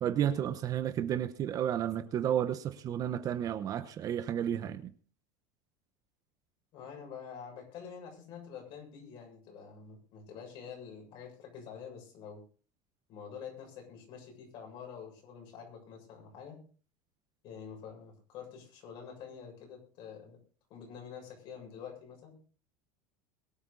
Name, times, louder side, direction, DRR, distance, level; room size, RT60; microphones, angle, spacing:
voice 1, 0.0-4.9, right 10 dB, 35° right, 1.0 m, -32 dB
voice 2, 6.7-12.4 13.1-16.6 17.4-20.4 20.7-22.4, left 7 dB, 50° left, 7.3 m, -47 dB
22.5 x 8.9 x 4.0 m
supercardioid pair, 155°, 11 cm